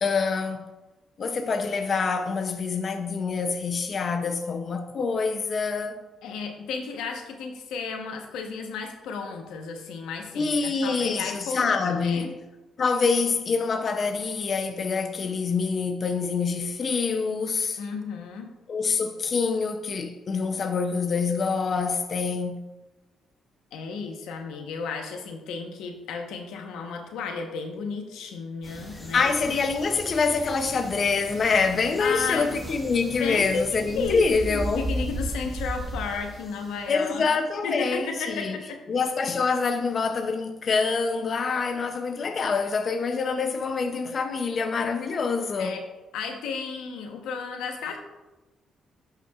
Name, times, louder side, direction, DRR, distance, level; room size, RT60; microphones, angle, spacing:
voice 1, 0.0-0.7 1.2-6.0 10.4-12.3 12.8-17.8 18.7-22.6 28.9-34.9 36.9-38.6 38.9-45.8, left 4 dB, 45° left, 0.6 m, -26 dB
voice 2, 6.2-12.3 17.8-18.5 23.7-29.3 32.0-32.6 33.2-33.7 34.0-37.3 37.6-38.8 45.6-45.8 46.1-48.0, left 5 dB, 90° left, 1.0 m, -33 dB
sound 1, 28.6-37.0, right 1 dB, 5° left, 1.8 m, -36 dB
12.0 x 5.7 x 2.4 m
cardioid pair, 90°, 0 cm